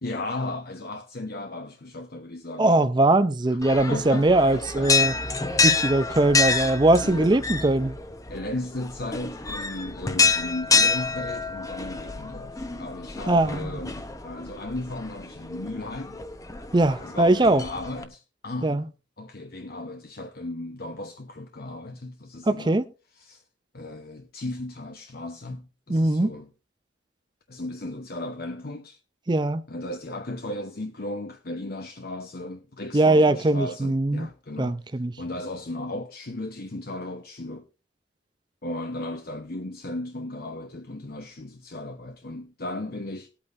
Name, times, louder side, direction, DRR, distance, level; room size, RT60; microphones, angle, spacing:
voice 1, 0.0-2.9 3.5-3.6 3.9-5.4 7.0-7.3 8.3-16.2 17.0-18.8 19.2-22.8 23.1-23.4 23.7-26.5 27.5-29.0 29.7-37.7 38.6-43.3, left 2 dB, 55° left, 0.9 m, -36 dB
voice 2, 2.6-5.1 5.6-8.0 13.3-13.8 16.7-17.6 18.6-18.8 22.5-22.9 25.9-26.3 29.3-29.6 32.9-34.3 34.6-35.1, right 2 dB, 25° right, 0.5 m, -21 dB
sound 1, 3.6-18.0, left 4 dB, 20° left, 0.9 m, -28 dB
19.5 x 8.7 x 2.6 m
head